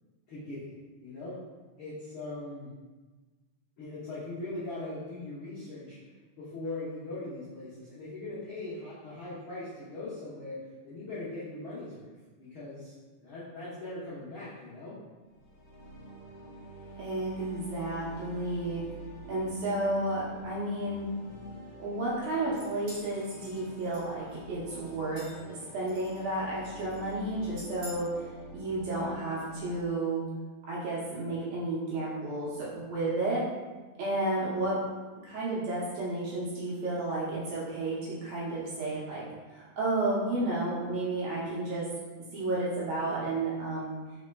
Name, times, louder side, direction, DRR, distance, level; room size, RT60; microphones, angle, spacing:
voice 1, 0.3-1.4 1.8-2.7 3.8-6.0 6.4-12.1 12.4-12.9 13.2-15.0, left 2 dB, 80° left, -11 dB, 1.1 m, -40 dB
sound 1, 15.2-29.8, right 1 dB, 60° left, 1.9 m, -47 dB
voice 2, 17.0-18.8 19.3-21.1 21.8-28.3 28.5-30.2 30.7-33.4 34.0-34.8 35.2-39.2 39.5-41.9 42.3-43.9, right 2 dB, 70° right, -8 dB, 1.8 m, -32 dB
Dog Collar Jingling, 22.2-24.3 24.8-25.5 25.9-26.3 26.6-27.1 27.6-27.9, equal, 50° right, 1.9 m, -48 dB
4.3 x 4.2 x 2.2 m, 1.3 s
omnidirectional pair, 3.8 m